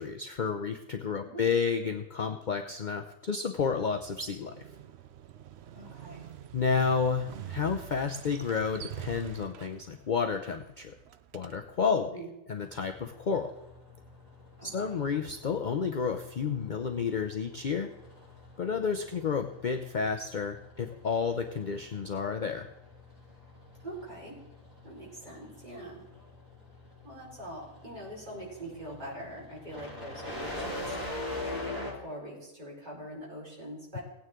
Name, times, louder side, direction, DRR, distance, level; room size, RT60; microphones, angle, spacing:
voice 1, 0.0-4.5 6.5-10.9 11.3-12.1 12.5-13.5 14.6-17.9 18.6-22.7, left 5 dB, 45° left, 5 dB, 0.7 m, -31 dB
voice 2, 1.2-1.5 5.7-6.3 11.9-12.3 14.6-15.0 23.8-24.4 24.8-26.0 27.0-30.9 31.3-34.0, right 1 dB, 35° right, -5 dB, 4.9 m, -43 dB
Motorcycle, 3.6-11.9, right 10 dB, 60° right, 0.8 m, -46 dB
sound 1, 12.5-31.9, left 1 dB, 85° right, 3.9 m, -44 dB
17.5 x 9.4 x 3.7 m, 0.91 s
omnidirectional pair, 1.4 m